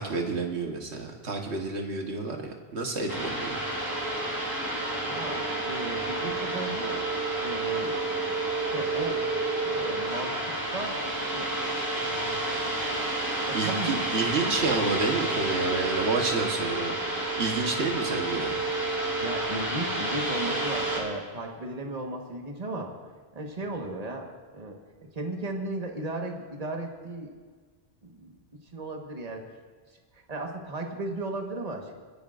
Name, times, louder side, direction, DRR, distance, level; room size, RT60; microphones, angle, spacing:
voice 1, 0.0-3.6 13.5-18.5, right 3 dB, 85° right, 2 dB, 1.6 m, -30 dB
sound 1, 3.1-21.0, right 2 dB, 20° right, 3.3 m, -30 dB
voice 2, 5.0-7.0 7.4-8.0 8.7-9.3 9.6-11.0 11.3-11.5 12.0-12.4 13.5-14.2 14.6-14.7 19.1-22.9 23.3-24.8 25.1-27.3 28.0-28.3 28.7-29.5 30.3-31.9, right 2 dB, 35° right, 2 dB, 1.5 m, -35 dB
30.0 x 10.0 x 2.5 m, 1.5 s
omnidirectional pair, 1.1 m